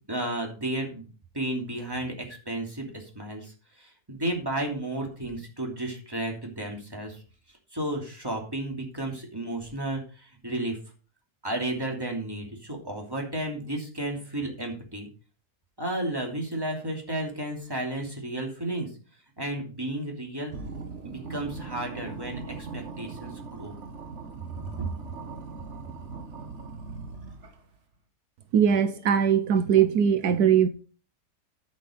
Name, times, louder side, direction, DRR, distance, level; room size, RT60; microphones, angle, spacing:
voice 1, 0.1-1.1 1.3-7.2 7.7-10.8 11.4-15.1 15.8-18.9 19.4-20.7 21.0-23.7 24.6-24.9, right 1 dB, 15° right, 2.9 m, -33 dB
sound 1, 20.5-27.7, right 4 dB, 50° right, 1.6 m, -40 dB
voice 2, 28.5-30.7, right 8 dB, 80° right, 1.3 m, -21 dB
11.5 x 6.3 x 5.1 m
omnidirectional pair, 1.7 m